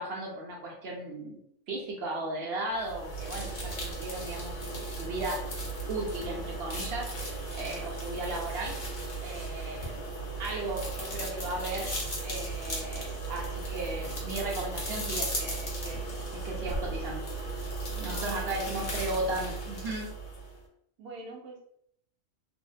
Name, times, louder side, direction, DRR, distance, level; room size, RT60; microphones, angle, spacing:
voice 1, 0.0-1.4 1.7-5.4 5.9-8.8 9.2-10.0 10.4-11.9 12.2-16.1 16.3-17.3 18.0-20.1, right 2 dB, 60° right, -2 dB, 0.7 m, -36 dB
sound 1, 2.8-20.6, right 2 dB, 50° left, 0.8 m, -36 dB
voice 2, 17.9-18.8 21.0-21.6, right 3 dB, 90° right, -7 dB, 1.1 m, -44 dB
2.7 x 2.0 x 2.3 m, 0.71 s
omnidirectional pair, 1.4 m